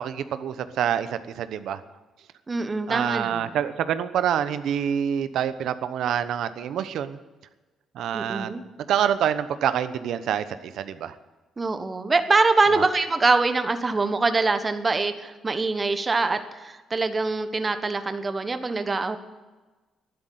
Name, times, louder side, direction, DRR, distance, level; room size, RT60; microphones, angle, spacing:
voice 1, 0.0-1.8 2.9-7.2 7.9-8.5 8.9-11.1 12.7-12.9, right 9 dB, 75° right, 12 dB, 0.9 m, -26 dB
voice 2, 2.5-3.6 8.1-8.6 11.6-19.2, right 3 dB, 30° right, 9 dB, 1.3 m, -24 dB
11.5 x 11.0 x 9.3 m, 1.2 s
cardioid pair, 90°, 0 cm